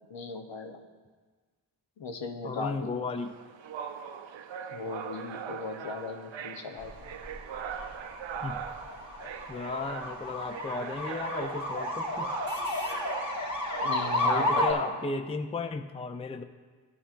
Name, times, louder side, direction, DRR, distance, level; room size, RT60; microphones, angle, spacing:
voice 1, 0.1-0.8 2.0-3.0 4.7-6.9 13.8-15.0, left 4 dB, 70° left, 4 dB, 1.0 m, -36 dB
voice 2, 2.4-3.4 8.4-8.6 9.5-12.3 14.2-16.4, left 3 dB, 15° left, 8 dB, 0.4 m, -35 dB
sound 1, 3.2-14.6, right 8 dB, 75° right, 0.6 m, -41 dB
sound 2, 6.8-14.7, left 1 dB, 40° left, 1.9 m, -32 dB
14.0 x 8.5 x 2.5 m, 1.4 s
cardioid pair, 60°, 46 cm